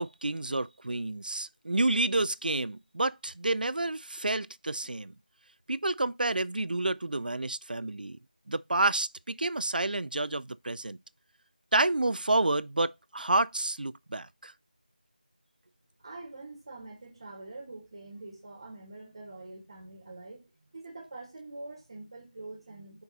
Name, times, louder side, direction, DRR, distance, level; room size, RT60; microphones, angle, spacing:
voice 1, 0.0-5.1 5.7-8.2 8.5-11.0 11.7-14.5, right 2 dB, 70° right, 0.4 m, -29 dB
voice 2, 16.0-20.5 20.7-23.0, right 2 dB, 35° right, 1.9 m, -45 dB
5.3 x 4.7 x 4.1 m
figure-of-eight pair, 170°, 5 cm